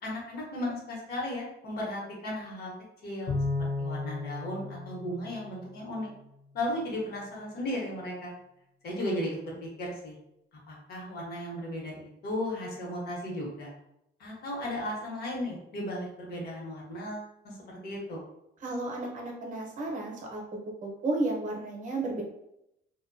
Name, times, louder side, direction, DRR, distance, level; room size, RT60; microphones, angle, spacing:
voice 1, 0.0-2.7 3.0-3.4 3.8-6.1 6.5-8.3 8.8-10.2 10.7-13.7 14.2-17.5 17.8-18.2, left 1 dB, 55° left, -3 dB, 1.0 m, -35 dB
Bowed string instrument, 3.3-5.9, left 3 dB, 35° left, 0.6 m, -34 dB
voice 2, 18.6-20.4 20.8-22.2, right 2 dB, 40° right, 0 dB, 0.7 m, -32 dB
2.6 x 2.2 x 2.5 m, 0.82 s
cardioid pair, 145°, 19 cm